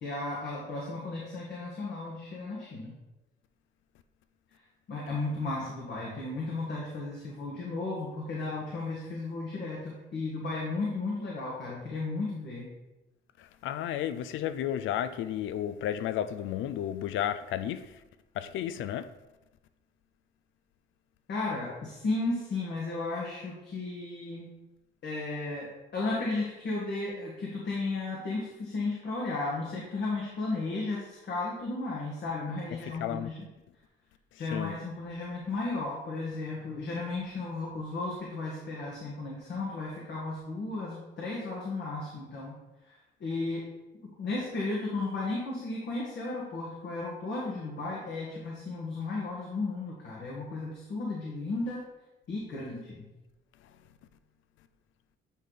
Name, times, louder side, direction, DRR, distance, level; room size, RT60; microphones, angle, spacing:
voice 1, 0.0-2.9 4.9-12.7 21.3-24.5 25.0-33.4 34.4-42.6 42.9-43.0 43.2-43.7 44.2-51.8 52.3-53.1, left 3 dB, 60° left, 1.5 m, -34 dB
voice 2, 13.4-18.0 18.4-19.1 32.8-33.3 34.5-34.8, left 10 dB, 80° left, 0.4 m, -33 dB
8.6 x 3.3 x 3.9 m
cardioid pair, 90°, 20 cm